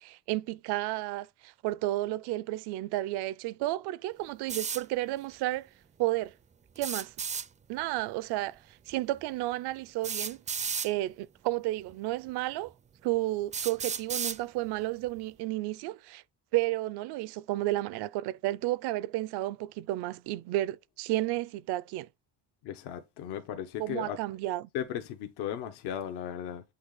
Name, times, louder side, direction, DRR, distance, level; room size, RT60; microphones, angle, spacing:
voice 1, 0.0-5.7 6.0-6.3 6.8-7.1 7.7-8.6 8.9-10.4 10.8-12.7 13.0-16.2 16.5-22.1 23.8-24.7, right 17 dB, 75° right, 0.6 m, -32 dB
sound 1, 4.5-4.8 6.8-7.5 8.9-9.0 10.0-10.9 11.9-12.0 12.7-12.8 13.5-14.4, right 6 dB, 20° right, 0.4 m, -33 dB
voice 2, 22.6-24.2 24.7-26.6, left 9 dB, 80° left, 1.3 m, -36 dB
8.5 x 2.9 x 3.9 m
cardioid pair, 130°, 40 cm